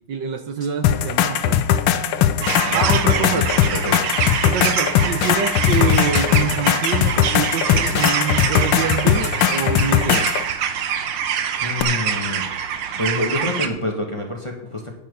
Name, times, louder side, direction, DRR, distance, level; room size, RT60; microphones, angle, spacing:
voice 1, 0.0-2.3 2.7-3.5 4.4-10.3, right 7 dB, 65° right, 8 dB, 1.4 m, -26 dB
sound 1, 0.8-10.4 11.8-11.9, left 10 dB, 75° left, 1.6 m, -19 dB
sound 2, 2.4-13.7, right 8 dB, 80° right, 1.9 m, -25 dB
voice 2, 2.6-3.4 3.7-4.2 11.6-12.4 13.0-14.9, left 2 dB, 15° left, 2 dB, 1.4 m, -27 dB
10.5 x 10.0 x 5.4 m, 0.76 s
omnidirectional pair, 2.3 m